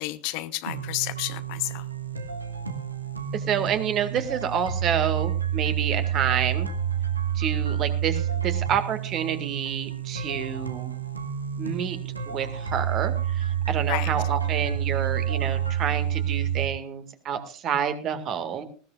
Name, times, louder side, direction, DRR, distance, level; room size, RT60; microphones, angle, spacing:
voice 1, 0.0-1.8 13.9-14.1, left 19 dB, 50° left, 0.8 m, -31 dB
sound 1, 0.7-16.7, right 9 dB, 80° right, 1.3 m, -29 dB
voice 2, 3.3-6.7 7.4-10.9 11.6-12.0 12.3-18.6, right 8 dB, 40° right, 2.0 m, -28 dB
19.5 x 16.0 x 2.5 m
figure-of-eight pair, 75°, 0 cm